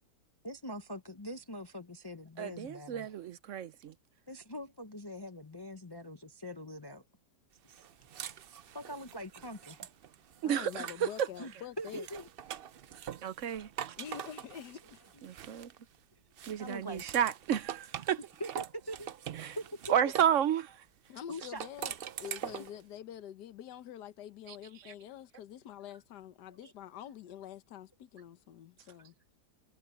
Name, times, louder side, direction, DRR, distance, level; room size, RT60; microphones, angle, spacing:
voice 1, 0.4-3.1 4.3-7.0 7.6-7.8 8.7-9.8 11.4-11.5 11.8-12.3 16.6-17.0 18.4-19.1 19.6-20.1 21.3-21.6 26.6-26.7, equal, 30° left, 0.4 m, -43 dB
voice 2, 2.4-3.9 10.4-11.1 13.2-13.7 15.2-15.7 16.5-18.2 19.4-19.6 19.9-20.7 24.9-25.0, right 9 dB, 60° right, 0.9 m, -31 dB
sound 1, 7.7-11.4 11.8-16.0 16.4-20.4 21.4-22.8, right 9 dB, 85° right, 0.5 m, -44 dB
voice 3, 10.4-12.1 14.0-15.0 21.1-29.1, left 10 dB, 80° left, 1.5 m, -46 dB
omnidirectional pair, 1.8 m